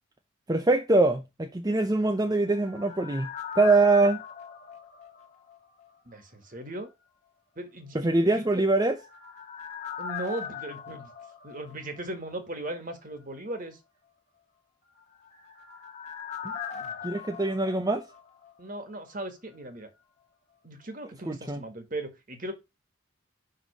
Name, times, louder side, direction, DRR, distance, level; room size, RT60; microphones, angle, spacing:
voice 1, 0.5-3.3 3.6-4.2 7.9-9.0 17.0-18.0 21.3-21.6, right 2 dB, 20° right, 0.6 m, -23 dB
sound 1, 2.0-5.9 6.1-6.2 8.6-12.4 12.6-12.7 15.0-18.8 19.1-19.2, left 7 dB, 35° left, 1.5 m, -40 dB
voice 2, 6.0-6.9 7.6-8.6 10.0-11.1 11.4-13.8 16.7-17.0 18.6-19.9 20.6-22.5, right 1 dB, 40° right, 1.7 m, -38 dB
5.8 x 5.2 x 6.0 m
head